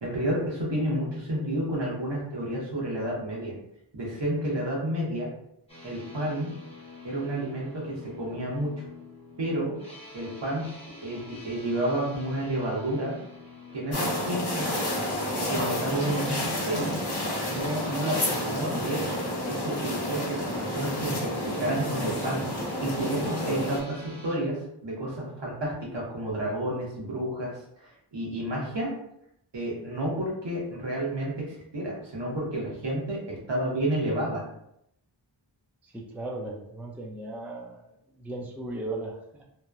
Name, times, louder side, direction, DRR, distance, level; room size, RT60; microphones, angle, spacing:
voice 1, 0.0-3.5 3.9-5.3 5.8-6.5 7.0-8.7 9.4-9.8 10.1-10.7 11.0-13.2 13.7-14.9 15.3-17.0 17.5-19.1 19.4-22.4 22.8-28.9 29.5-34.5, right 1 dB, 65° right, -4 dB, 1.0 m, -30 dB
sound 1, 5.7-24.4, left 3 dB, 15° left, 0.8 m, -47 dB
sound 2, 13.9-23.8, left 1 dB, 60° left, 1.0 m, -30 dB
voice 2, 35.8-39.5, right 2 dB, 5° right, -1 dB, 0.4 m, -37 dB
2.9 x 2.1 x 2.3 m, 0.76 s
wide cardioid pair, 45°, 45 cm